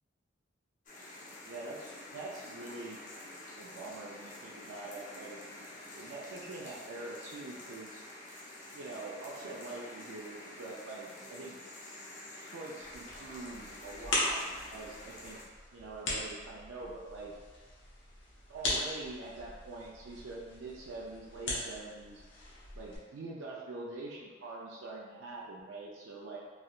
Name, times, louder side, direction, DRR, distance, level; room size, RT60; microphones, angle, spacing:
sound 1, 0.9-15.4, left 1 dB, 45° left, 0.6 m, -48 dB
voice 1, 1.5-3.0 3.6-5.4 5.9-8.0 8.7-11.6 12.4-14.4 14.7-15.4 15.7-17.3 18.5-22.2 22.7-26.4, right 2 dB, 85° right, -4 dB, 0.4 m, -44 dB
sound 2, 12.8-23.0, left 1 dB, 75° left, 0.9 m, -39 dB
3.2 x 2.8 x 2.4 m, 1.4 s
head